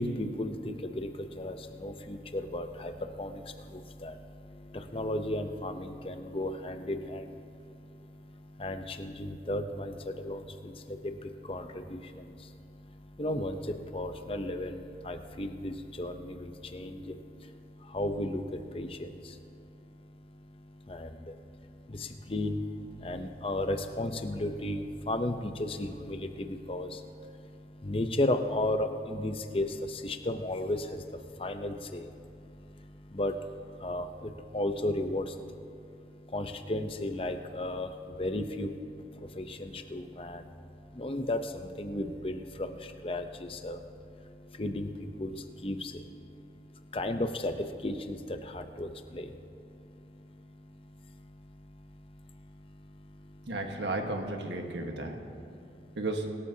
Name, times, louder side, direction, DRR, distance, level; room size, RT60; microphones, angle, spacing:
voice 1, 0.0-53.6 54.7-56.0, left 1 dB, 30° left, 7 dB, 0.7 m, -36 dB
voice 2, 53.5-55.2 56.0-56.3, right 2 dB, 85° right, 3 dB, 1.4 m, -33 dB
25.0 x 13.0 x 2.8 m, 2.5 s
head